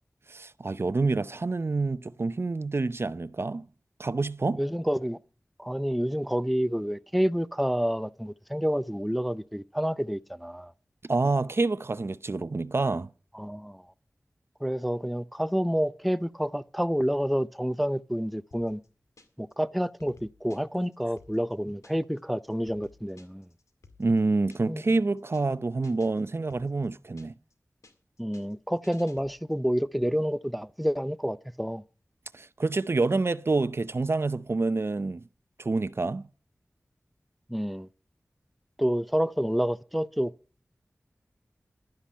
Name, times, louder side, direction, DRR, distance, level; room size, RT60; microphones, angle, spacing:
voice 1, 0.3-3.7 4.0-4.6 11.1-13.1 24.0-27.3 32.3-35.2 35.6-36.3, right 3 dB, 50° right, 0.6 m, -27 dB
voice 2, 4.5-5.2 5.6-10.7 13.3-13.8 14.6-18.8 19.4-23.4 24.7-24.8 28.2-31.8 37.5-37.9 38.8-40.3, equal, ahead, 0.6 m, -28 dB
sound 1, 18.5-19.5 19.8-22.2 22.5-24.9 25.2-25.5 25.8-27.5 27.8-29.6, left 3 dB, 90° left, 2.0 m, -57 dB
11.5 x 10.0 x 7.4 m
wide cardioid pair, 55°, 5 cm